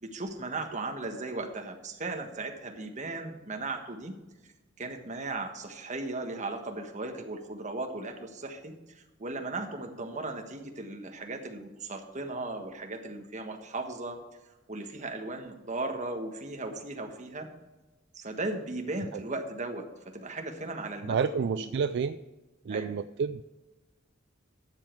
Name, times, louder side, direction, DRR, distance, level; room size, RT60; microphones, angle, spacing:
voice 1, 0.0-4.1 4.8-14.2 14.5-17.5 18.1-21.2 21.5-21.7 22.6-22.9, right 2 dB, 40° right, 4 dB, 1.4 m, -37 dB
voice 2, 21.0-22.2 22.6-23.4, right 6 dB, 60° right, 12 dB, 0.3 m, -29 dB
12.0 x 7.4 x 4.6 m, 1.1 s
head